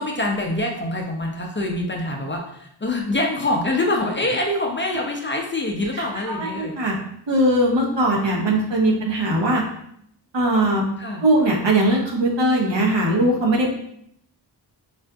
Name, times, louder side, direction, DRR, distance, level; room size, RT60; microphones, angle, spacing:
voice 1, 0.0-6.8 8.9-9.0 11.0-11.2, left 2 dB, 30° left, 1 dB, 0.4 m, -25 dB
voice 2, 5.9-7.0 7.3-9.6 10.3-10.9 11.2-13.7, right 1 dB, 80° right, -2 dB, 0.8 m, -20 dB
3.5 x 2.5 x 2.2 m, 0.71 s
wide cardioid pair, 80°, 43 cm